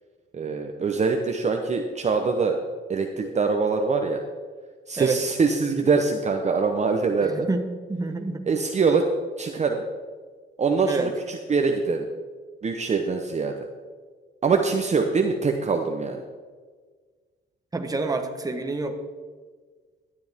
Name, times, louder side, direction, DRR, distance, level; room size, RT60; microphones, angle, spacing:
voice 1, 0.3-2.6 2.9-4.2 4.9-7.5 8.4-9.1 9.4-9.8 10.6-12.1 12.6-13.5 14.4-16.2, right 4 dB, 35° right, 4 dB, 0.9 m, -23 dB
voice 2, 7.2-7.6 7.9-8.4 10.8-11.1 17.7-19.0, right 3 dB, 20° right, 5 dB, 1.1 m, -27 dB
12.5 x 9.7 x 3.6 m, 1.5 s
cardioid pair, 90°, 20 cm